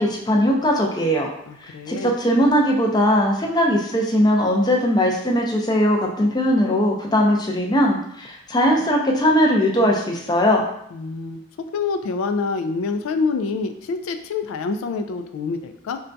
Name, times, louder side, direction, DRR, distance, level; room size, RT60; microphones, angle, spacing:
voice 1, 0.0-1.3 1.6-10.7, equal, 20° left, 0 dB, 0.4 m, -19 dB
voice 2, 1.5-2.1 10.9-16.0, left 4 dB, 85° left, 8 dB, 0.3 m, -26 dB
5.5 x 2.2 x 2.6 m, 0.73 s
head